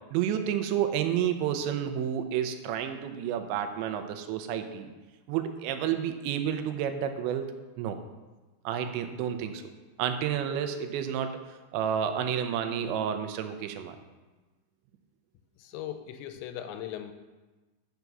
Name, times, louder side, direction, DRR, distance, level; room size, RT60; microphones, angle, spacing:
voice 1, 0.1-4.9 5.3-7.5 7.8-8.0 8.7-9.6 10.0-11.3 11.7-14.0, right 9 dB, 85° right, 7 dB, 3.0 m, -30 dB
voice 2, 15.6-17.1, left 11 dB, 85° left, 8 dB, 2.9 m, -38 dB
8.1 x 6.6 x 6.1 m, 1.2 s
omnidirectional pair, 5.1 m